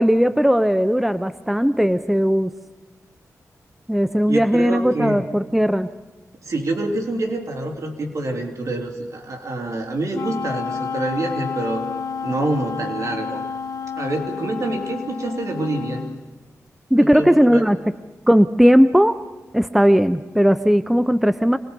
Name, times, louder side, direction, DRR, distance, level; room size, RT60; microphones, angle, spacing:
voice 1, 0.0-2.5 3.9-5.9 16.9-17.8 18.3-19.2 19.5-21.6, equal, 5° right, 12 dB, 0.6 m, -17 dB
voice 2, 4.3-5.3 6.4-11.8 12.2-13.4 14.0-16.1 16.9-17.7, right 2 dB, 65° right, 2 dB, 3.5 m, -26 dB
Wind instrument woodwind instrument, 10.1-16.2, left 6 dB, 85° left, 1.0 m, -30 dB
26.5 x 20.0 x 5.3 m, 1.3 s
wide cardioid pair, 80°, 6 cm